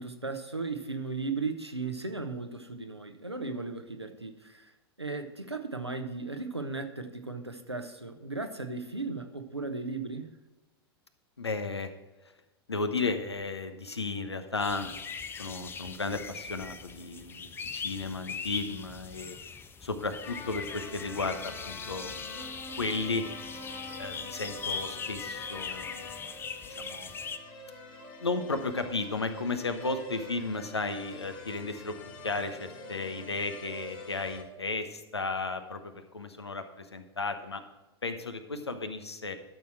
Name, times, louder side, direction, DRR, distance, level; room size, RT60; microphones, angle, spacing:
voice 1, 0.0-4.7 5.0-10.3, right 3 dB, 90° right, 6 dB, 1.0 m, -36 dB
voice 2, 11.4-11.9 12.7-14.9 15.4-19.4 19.8-22.1 22.8-23.2 24.0-26.1 26.7-27.1 28.2-31.9 32.2-37.6 38.0-39.4, left 3 dB, 80° left, 9 dB, 1.1 m, -34 dB
sound 1, 14.6-27.4, left 5 dB, 15° left, 0.6 m, -40 dB
sound 2, 20.2-34.4, left 2 dB, 35° left, 1.9 m, -45 dB
12.5 x 6.9 x 4.4 m, 1.1 s
figure-of-eight pair, 90°, 14 cm